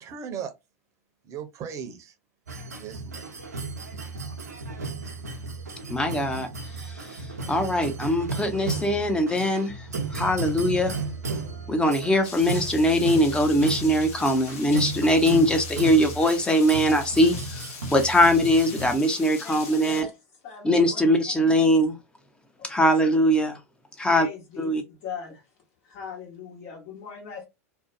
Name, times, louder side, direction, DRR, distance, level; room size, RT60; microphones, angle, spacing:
voice 1, 0.0-0.5 1.2-2.1 2.7-3.5, right 7 dB, 35° right, 0.7 m, -37 dB
sound 1, 2.5-18.9, right 4 dB, 85° right, 0.7 m, -34 dB
voice 2, 5.9-6.5 7.5-9.7 10.1-11.0 11.7-20.1 20.6-21.9 22.7-23.6 24.0-24.3 24.6-24.8, equal, 10° left, 0.7 m, -21 dB
Rain, 12.2-20.0, left 5 dB, 65° left, 0.8 m, -41 dB
voice 3, 19.4-20.1 20.4-21.0 21.3-21.5 22.6-23.0 24.1-25.4 25.8-27.4, left 6 dB, 50° left, 1.1 m, -40 dB
2.6 x 2.1 x 2.5 m
hypercardioid pair, 90°, 9 cm